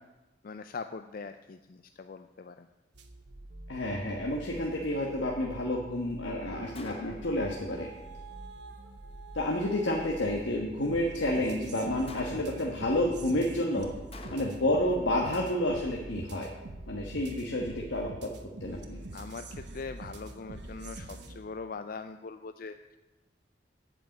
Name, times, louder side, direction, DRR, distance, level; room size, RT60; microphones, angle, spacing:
voice 1, 0.4-2.7 9.7-9.8 19.1-23.0, left 4 dB, 50° left, 9 dB, 0.4 m, -42 dB
sound 1, 2.9-21.4, right 2 dB, 65° right, 1.1 m, -45 dB
voice 2, 3.7-7.9 9.3-13.9 14.3-16.5 16.9-18.3 18.6-19.0, left 1 dB, 80° left, 0 dB, 1.3 m, -30 dB
Gunshot gunfire, 6.7-7.4 12.1-12.7 14.1-14.8, left 2 dB, 30° left, 1.1 m, -47 dB
8.8 x 7.7 x 8.9 m, 1.1 s
head